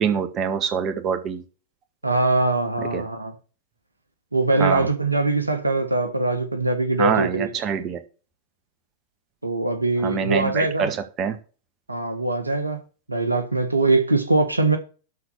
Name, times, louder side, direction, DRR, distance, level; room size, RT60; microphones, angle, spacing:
voice 1, 0.0-1.4 2.9-3.0 4.6-4.9 7.0-8.0 10.0-11.4, right 7 dB, 30° right, 1.8 m, -25 dB
voice 2, 2.0-3.3 4.3-7.5 9.4-10.9 11.9-12.8 13.1-14.8, right 2 dB, 85° right, 1.3 m, -22 dB
12.5 x 4.3 x 6.6 m
figure-of-eight pair, 90°, 0 cm